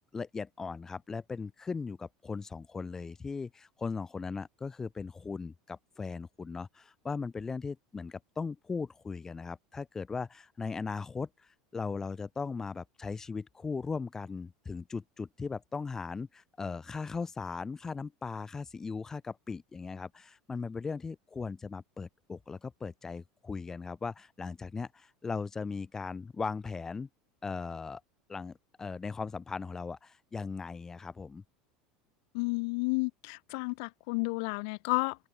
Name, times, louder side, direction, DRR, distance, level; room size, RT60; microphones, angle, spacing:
voice 1, 0.1-27.1 27.4-28.0 28.3-31.4, left 4 dB, 20° left, 6.4 m, -38 dB
voice 2, 32.3-35.2, left 33 dB, 70° left, 2.4 m, -31 dB
open air
supercardioid pair, 120°, 3 cm